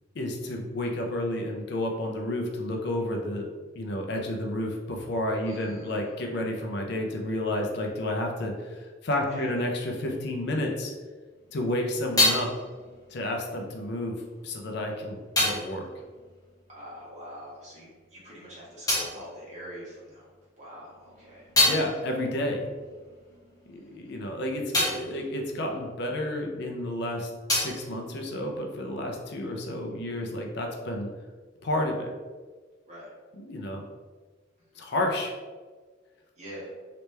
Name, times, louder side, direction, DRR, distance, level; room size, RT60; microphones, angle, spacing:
voice 1, 0.1-3.5 3.7-10.9 11.5-12.5 13.1-15.9 21.6-22.7 23.7-31.1 31.6-32.1 33.4-33.8 34.8-35.3, left 1 dB, 60° left, 2 dB, 0.5 m, -31 dB
voice 2, 5.4-6.2 9.3-9.6 16.7-20.3 20.6-21.5 21.9-22.1 24.0-24.1 32.9-33.1 34.7-34.9 36.4-36.7, equal, 35° right, -7 dB, 1.5 m, -44 dB
sound 1, 11.3-17.3 17.6-20.3 20.7-26.7 27.0-29.0, left 1 dB, 20° left, 1.0 m, -31 dB
3.2 x 3.0 x 3.3 m, 1.4 s
head